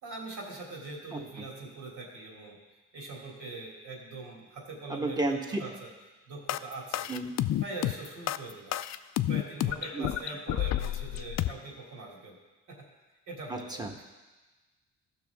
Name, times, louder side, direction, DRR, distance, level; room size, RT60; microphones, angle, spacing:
voice 1, 0.0-2.6 2.9-5.9 6.3-7.1 7.6-8.7 9.3-12.4 12.7-12.9 13.3-13.9, right 2 dB, 75° right, -3 dB, 3.0 m, -42 dB
voice 2, 4.9-5.6 7.1-7.3 9.9-10.1 13.5-14.0, right 2 dB, 15° right, 2 dB, 1.3 m, -32 dB
sound 1, 6.5-11.5, left 13 dB, 60° left, 0.4 m, -30 dB
14.5 x 6.2 x 3.6 m, 1.2 s
cardioid pair, 90°, 30 cm